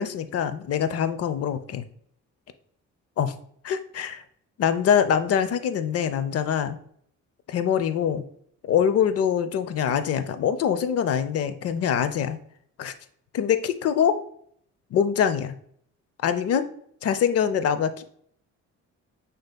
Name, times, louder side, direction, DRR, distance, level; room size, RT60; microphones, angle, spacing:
voice 1, 0.0-1.8 3.2-3.3 3.6-4.2 4.6-6.8 7.5-8.2 8.6-12.4 12.8-12.9 13.3-14.1 14.9-15.5 16.2-16.7 17.0-18.0, left 8 dB, 55° left, 12 dB, 0.5 m, -24 dB
6.3 x 2.7 x 2.2 m, 0.64 s
cardioid pair, 90°, 30 cm